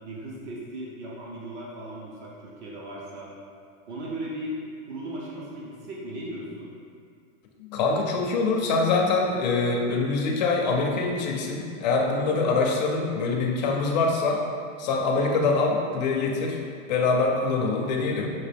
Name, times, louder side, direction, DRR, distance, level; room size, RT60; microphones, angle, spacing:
voice 1, 0.0-3.3 3.9-4.6 4.9-6.7, right 1 dB, 55° right, -5 dB, 0.8 m, -37 dB
voice 2, 7.6-14.4 14.8-16.6 16.9-18.3, left 3 dB, 35° left, 0 dB, 0.4 m, -24 dB
5.9 x 2.5 x 3.4 m, 2.3 s
supercardioid pair, 165°, 41 cm